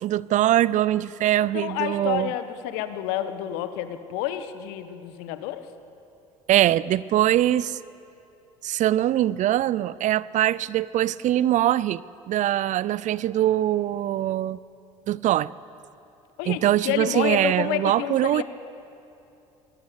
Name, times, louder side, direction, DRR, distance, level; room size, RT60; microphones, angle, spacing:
voice 1, 0.0-2.3 6.5-7.8 8.6-12.0 12.3-14.6 15.1-15.5 16.5-18.4, right 13 dB, 45° right, 20 dB, 0.6 m, -22 dB
voice 2, 1.5-5.6 16.4-18.4, left 12 dB, 65° left, 11 dB, 1.5 m, -29 dB
25.0 x 19.5 x 8.4 m, 2.7 s
figure-of-eight pair, 65°, 18 cm